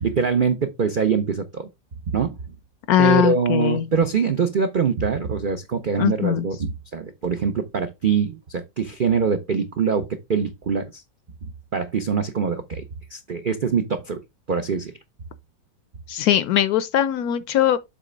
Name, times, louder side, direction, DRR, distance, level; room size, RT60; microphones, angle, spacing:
voice 1, 0.0-1.7 2.1-2.4 3.0-11.0 11.4-12.8 13.1-14.2 14.5-14.9, right 6 dB, 90° right, 0.4 m, -23 dB
voice 2, 2.9-3.9 6.0-6.5 16.1-17.8, left 11 dB, 70° left, 1.0 m, -20 dB
7.6 x 3.2 x 5.1 m
omnidirectional pair, 1.9 m